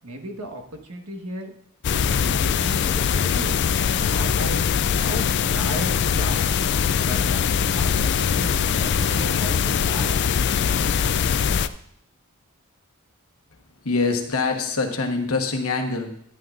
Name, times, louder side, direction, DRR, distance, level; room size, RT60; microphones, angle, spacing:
voice 1, 0.0-1.6 1.9-3.6 4.1-4.7 5.0-5.2 5.5-6.5 7.0-10.1, right 1 dB, 85° right, 3 dB, 1.4 m, -35 dB
sound 1, 1.8-11.7, left 7 dB, 50° left, 0.4 m, -22 dB
voice 2, 13.8-16.1, left 3 dB, 75° left, 4 dB, 1.2 m, -24 dB
11.5 x 11.0 x 2.5 m, 0.70 s
head